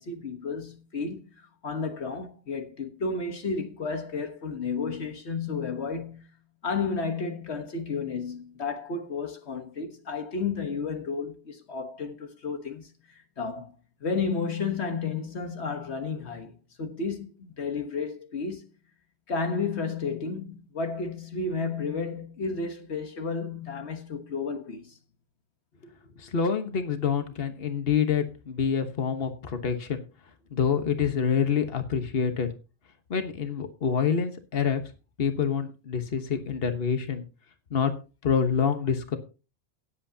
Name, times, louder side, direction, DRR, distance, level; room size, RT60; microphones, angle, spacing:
voice 1, 0.0-6.4 6.6-13.7 14.0-16.5 16.8-18.7 19.3-24.9, left 4 dB, 75° left, 1.5 m, -32 dB
voice 2, 26.2-30.0 30.5-32.5 33.1-34.8 35.2-37.2 37.7-37.9 38.2-39.2, left 7 dB, 60° left, 1.4 m, -26 dB
18.0 x 8.0 x 2.8 m
omnidirectional pair, 1.1 m